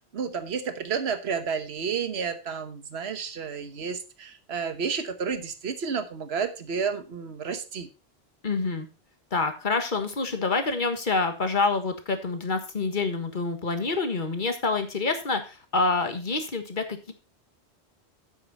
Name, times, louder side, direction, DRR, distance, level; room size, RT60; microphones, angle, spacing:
voice 1, 0.1-7.9, right 6 dB, 65° right, 9 dB, 1.4 m, -31 dB
voice 2, 8.4-8.9 9.3-17.1, left 3 dB, 45° left, 7 dB, 1.6 m, -27 dB
9.6 x 8.3 x 4.1 m, 0.31 s
omnidirectional pair, 1.2 m